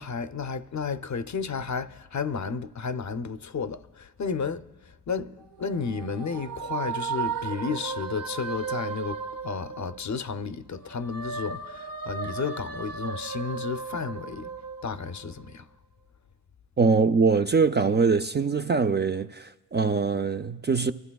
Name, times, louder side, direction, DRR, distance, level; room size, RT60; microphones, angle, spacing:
voice 1, 0.0-4.6 5.1-14.5 14.8-15.6, left 5 dB, 45° left, 0.6 m, -32 dB
sound 1, 5.4-10.4 10.8-15.5, right 6 dB, 55° right, 0.8 m, -36 dB
voice 2, 16.8-20.9, right 4 dB, 30° right, 0.4 m, -23 dB
24.0 x 12.5 x 2.3 m
cardioid pair, 45°, 40 cm